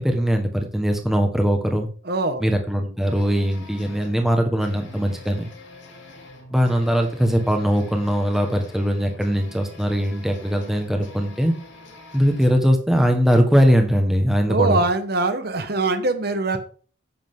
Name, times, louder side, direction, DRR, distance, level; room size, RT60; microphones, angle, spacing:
voice 1, 0.0-1.9 2.4-5.5 6.5-11.5 12.1-14.8, equal, ahead, 1.5 m, -20 dB
voice 2, 2.0-2.4 14.5-16.6, right 3 dB, 55° right, 1.2 m, -22 dB
sound 1, 3.0-12.5, left 3 dB, 70° left, 3.1 m, -45 dB
10.5 x 8.3 x 3.8 m
head